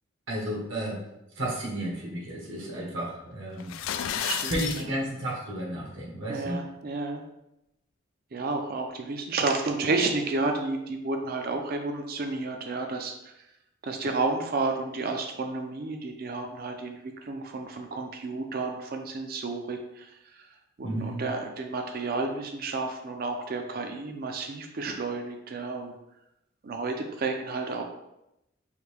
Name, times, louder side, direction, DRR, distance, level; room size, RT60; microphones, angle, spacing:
voice 1, 0.3-1.1 1.3-3.7 4.5-6.6 20.8-21.2, right 1 dB, 70° right, -3 dB, 1.1 m, -32 dB
sound 1, 3.6-4.9, left 9 dB, 85° left, 0.3 m, -31 dB
voice 2, 4.2-4.8 6.3-7.2 8.3-13.4 13.8-25.9 26.6-27.8, right 3 dB, 50° right, 4 dB, 0.4 m, -31 dB
4.9 x 2.7 x 3.3 m, 0.87 s
head